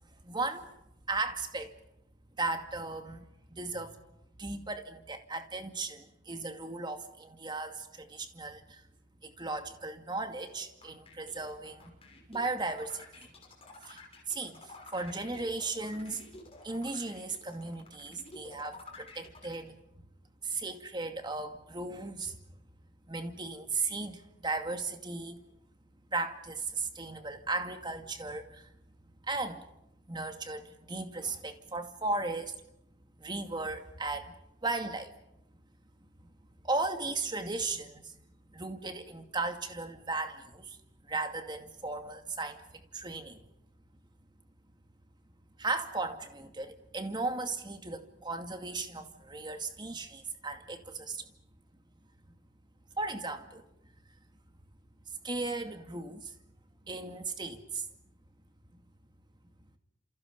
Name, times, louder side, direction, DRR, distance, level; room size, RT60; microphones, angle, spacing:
voice 1, 0.2-0.7 1.1-1.8 2.4-4.0 4.4-8.8 9.2-11.9 12.3-13.3 13.8-14.0 14.3-16.2 16.6-19.8 20.4-22.4 23.1-25.4 26.1-28.7 29.2-29.7 30.1-32.6 33.2-34.4 34.6-35.2 36.2-36.3 36.6-38.2 38.5-43.4 45.6-51.3 53.0-53.6 55.2-56.3 56.8-57.9 58.7-58.8, right 3 dB, 25° right, 6 dB, 2.3 m, -36 dB
sound 1, 10.5-19.6, left 3 dB, 30° left, 6.0 m, -51 dB
29.5 x 28.5 x 5.4 m, 0.83 s
head